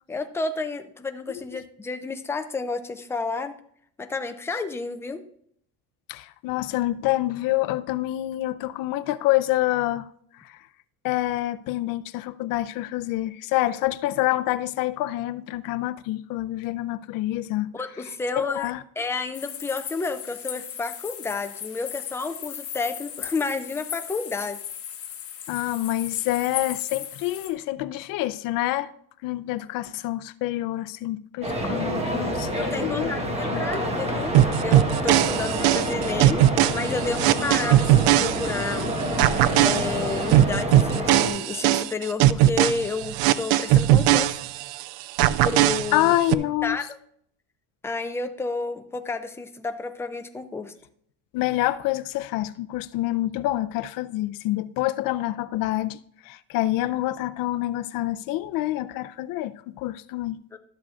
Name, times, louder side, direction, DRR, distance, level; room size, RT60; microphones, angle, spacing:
voice 1, 0.1-3.5 4.0-5.2 17.7-18.7 19.0-24.6 32.5-36.4 36.7-39.0 39.6-44.4 45.4-46.8 47.8-50.7 60.5-60.6, left 4 dB, 5° left, 0.3 m, -31 dB
voice 2, 6.1-10.1 10.3-10.6 11.0-17.7 18.4-18.8 25.5-28.9 29.2-33.6 45.9-46.8 51.3-60.4, left 16 dB, 60° left, 0.5 m, -27 dB
sound 1, 19.3-27.5, left 9 dB, 35° left, 1.1 m, -37 dB
sound 2, 31.4-41.3, equal, 15° right, 1.2 m, -28 dB
sound 3, 34.3-38.8 39.2-44.8 45.2-46.3, right 14 dB, 65° right, 0.5 m, -20 dB
12.5 x 7.3 x 2.4 m
cardioid pair, 150°, 39 cm